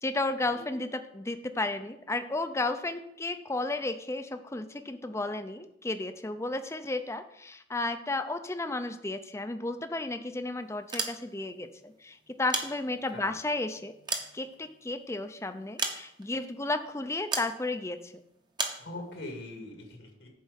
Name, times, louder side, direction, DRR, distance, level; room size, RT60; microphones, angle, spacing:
voice 1, 0.0-13.9 14.3-18.1, left 2 dB, 15° left, 9 dB, 0.5 m, -33 dB
sound 1, 10.8-11.6 12.3-13.3 13.8-15.0 15.8-16.4 17.3-17.6 18.6-18.9, right 4 dB, 25° right, 0.9 m, -34 dB
voice 2, 18.8-20.3, left 2 dB, 80° left, 1 dB, 2.1 m, -42 dB
7.4 x 4.7 x 6.4 m, 0.78 s
head